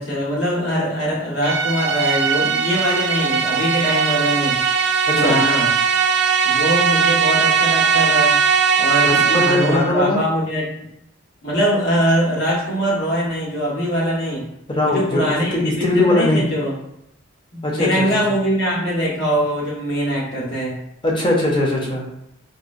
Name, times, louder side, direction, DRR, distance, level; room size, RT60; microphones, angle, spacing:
voice 1, 0.0-4.6 5.1-5.7 6.4-8.4 8.8-10.7 11.4-14.4 14.8-16.8 17.5-20.8, equal, 75° left, -6 dB, 1.2 m, -22 dB
sound 1, 1.4-9.9, right 6 dB, 80° right, 0.4 m, -19 dB
voice 2, 9.0-10.2 14.7-16.5 17.6-18.1 21.0-22.0, left 1 dB, 25° left, -3 dB, 0.6 m, -20 dB
4.0 x 2.1 x 2.5 m, 0.80 s
head